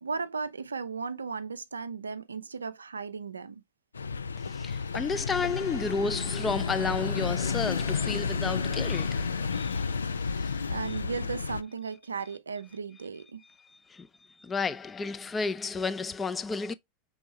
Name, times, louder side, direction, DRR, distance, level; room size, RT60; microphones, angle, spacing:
voice 1, 0.0-3.6 10.7-13.4, right 5 dB, 85° right, 0.4 m, -36 dB
sound 1, 3.9-11.6, left 5 dB, 85° left, 0.3 m, -31 dB
voice 2, 4.4-11.0 13.4-16.7, left 4 dB, 20° left, 0.4 m, -33 dB
5.3 x 3.5 x 2.7 m
figure-of-eight pair, 85°, 0 cm